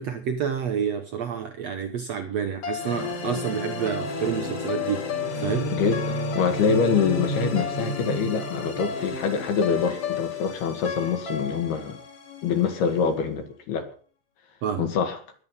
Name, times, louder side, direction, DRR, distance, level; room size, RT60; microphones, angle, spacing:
voice 1, 0.0-5.1 5.4-5.7 14.6-14.9, right 7 dB, 80° right, 1.5 m, -29 dB
sound 1, 2.6-12.9, left 3 dB, 40° left, 2.7 m, -31 dB
voice 2, 5.7-12.0 12.4-13.9 14.8-15.2, left 6 dB, 70° left, 3.8 m, -25 dB
21.0 x 9.3 x 5.6 m
omnidirectional pair, 4.8 m